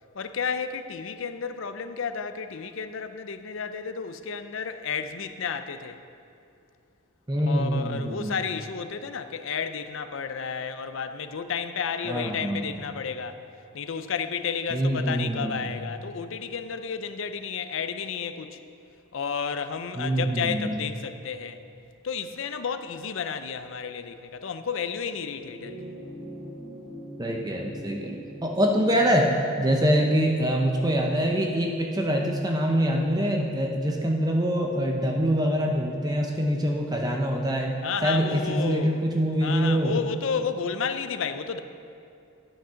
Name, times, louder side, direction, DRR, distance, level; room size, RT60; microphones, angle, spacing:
voice 1, 0.1-6.0 7.5-13.4 13.7-18.6 19.1-21.6 22.0-25.9 37.8-39.0 39.4-41.6, left 6 dB, 60° left, 9 dB, 0.5 m, -32 dB
voice 2, 7.3-8.4 12.0-12.6 14.7-15.6 20.0-20.8 27.2-29.3 29.6-37.7 38.0-39.9, equal, 20° right, 1 dB, 0.6 m, -25 dB
sound 1, 25.3-33.9 35.1-35.2, equal, 50° right, 1.6 m, -44 dB
10.0 x 6.4 x 5.7 m, 2.6 s
head